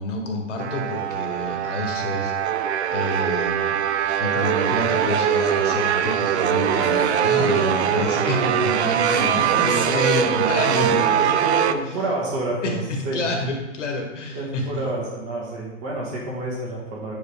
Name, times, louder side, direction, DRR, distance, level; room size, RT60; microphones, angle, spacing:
voice 1, 0.0-10.9 12.6-14.8, left 2 dB, 65° left, 2 dB, 1.6 m, -28 dB
sound 1, 0.6-11.7, right 9 dB, 60° right, 0.5 m, -22 dB
voice 2, 7.4-8.0 9.1-10.0 10.7-13.3 14.3-17.2, right 2 dB, 25° right, -4 dB, 1.8 m, -29 dB
8.0 x 5.3 x 3.3 m, 1.1 s
hypercardioid pair, 160°, 38 cm